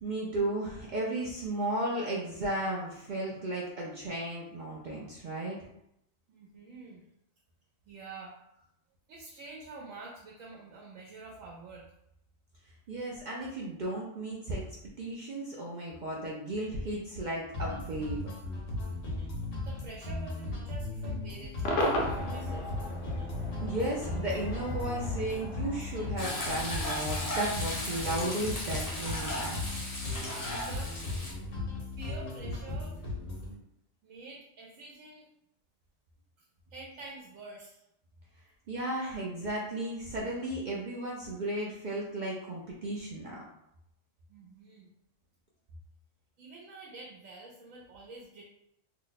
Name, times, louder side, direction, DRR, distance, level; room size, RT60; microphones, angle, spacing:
voice 1, 0.0-5.6 12.9-14.6 15.0-18.3 23.6-29.6 38.7-43.4, right 1 dB, 65° right, -4 dB, 0.5 m, -34 dB
voice 2, 6.3-7.0 7.9-8.3 9.1-11.8 19.6-23.0 30.2-30.9 32.0-32.9 34.0-35.3 36.7-37.8 44.3-44.9 46.4-48.4, right 3 dB, 85° right, -2 dB, 1.0 m, -47 dB
sound 1, 17.5-33.5, left 2 dB, 90° left, 1.2 m, -37 dB
Cheering / Crowd / Fireworks, 21.6-26.9, left 1 dB, 70° left, 0.9 m, -35 dB
Frying (food), 26.2-31.3, left 1 dB, 20° left, 0.6 m, -36 dB
2.8 x 2.0 x 3.9 m, 0.79 s
omnidirectional pair, 1.3 m